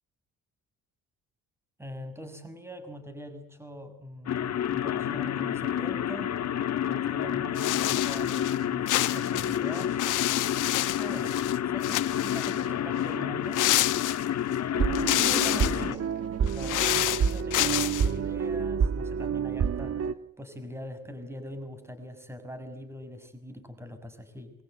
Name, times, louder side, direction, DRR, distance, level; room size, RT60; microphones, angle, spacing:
voice 1, 1.8-6.4 6.8-10.0 11.0-11.4 11.6-13.6 15.2-16.1 16.5-20.0 20.4-24.5, equal, 10° right, 9 dB, 6.4 m, -42 dB
sound 1, 4.3-16.0, left 10 dB, 60° left, 1.7 m, -29 dB
sound 2, 7.6-8.6 8.9-11.6 11.8-12.7 13.5-14.5 14.9-15.8 16.5-18.1, left 15 dB, 85° left, 1.3 m, -28 dB
sound 3, 14.7-20.1, right 6 dB, 55° right, 1.6 m, -28 dB
27.5 x 24.0 x 7.9 m, 0.75 s
cardioid pair, 90°, 30 cm